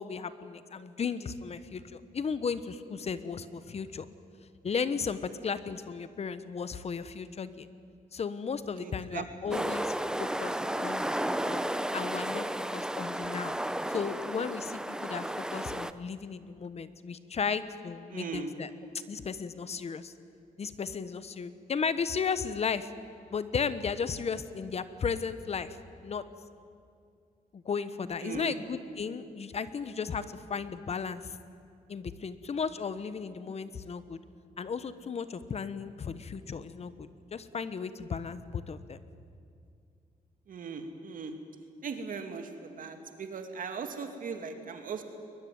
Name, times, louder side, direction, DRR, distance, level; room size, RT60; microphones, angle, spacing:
voice 1, 0.0-4.1 4.6-7.7 8.1-9.9 10.2-11.6 11.9-13.5 13.9-18.7 19.1-20.1 20.6-22.9 23.3-25.8 26.0-26.2 27.5-31.4 31.9-34.2 34.6-39.0, left 6 dB, 45° left, 13 dB, 1.1 m, -35 dB
voice 2, 8.7-9.3 9.5-9.6 18.1-18.5 28.2-28.6 40.5-41.3 41.8-45.0, right 5 dB, 65° right, 6 dB, 2.5 m, -38 dB
sound 1, 9.5-15.9, right 1 dB, 5° right, 0.7 m, -33 dB
21.5 x 21.5 x 9.4 m, 2.4 s
wide cardioid pair, 120°, 15 cm